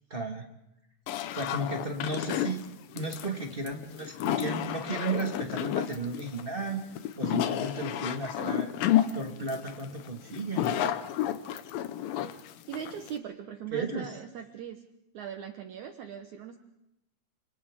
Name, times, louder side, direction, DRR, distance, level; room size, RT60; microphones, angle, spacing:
voice 1, 0.1-0.5 1.3-2.6 2.9-8.7 9.1-10.9 13.7-14.1, right 2 dB, 35° right, 2 dB, 0.8 m, -34 dB
sound 1, 1.1-13.2, left 11 dB, 80° left, 2.6 m, -31 dB
voice 2, 12.7-14.8 15.1-16.6, right 8 dB, 65° right, 6 dB, 2.1 m, -40 dB
29.5 x 28.0 x 3.6 m, 0.90 s
omnidirectional pair, 4.1 m